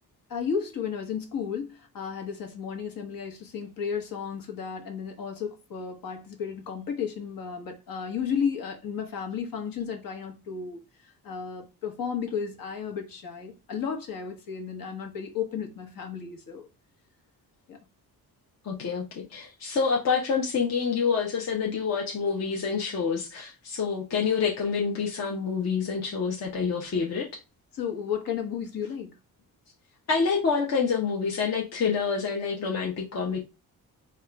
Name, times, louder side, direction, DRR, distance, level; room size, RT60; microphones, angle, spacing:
voice 1, 0.3-16.6 17.7-17.8 27.7-29.1, left 7 dB, 60° left, 1.3 m, -33 dB
voice 2, 18.6-27.3 30.1-33.4, left 5 dB, 45° left, 0.9 m, -27 dB
3.6 x 2.5 x 4.4 m
cardioid pair, 130°, 37 cm